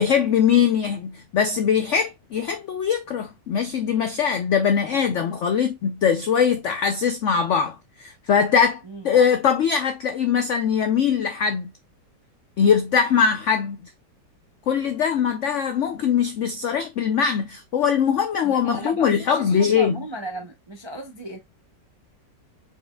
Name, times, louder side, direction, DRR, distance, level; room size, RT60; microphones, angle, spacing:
voice 1, 0.0-11.7 12.6-13.8 14.7-19.9, left 7 dB, 75° left, 0.6 m, -21 dB
voice 2, 18.4-21.4, right 2 dB, 40° right, 0.4 m, -35 dB
5.1 x 4.3 x 2.2 m
omnidirectional pair, 1.9 m